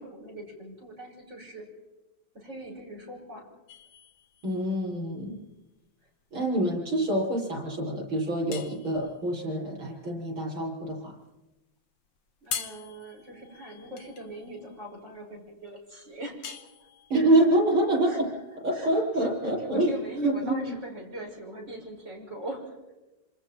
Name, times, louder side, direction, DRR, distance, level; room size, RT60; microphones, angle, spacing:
voice 1, 0.0-1.6 2.3-3.5 12.4-16.5 18.1-22.8, right 1 dB, 35° right, -2 dB, 6.8 m, -41 dB
sound 1, 3.7-20.5, left 7 dB, 70° left, 1.8 m, -45 dB
voice 2, 4.4-5.4 6.3-11.1 17.1-18.3 18.6-19.9 20.2-20.6, right 1 dB, 90° right, -4 dB, 7.4 m, -26 dB
27.0 x 26.5 x 4.4 m, 1.0 s
omnidirectional pair, 2.2 m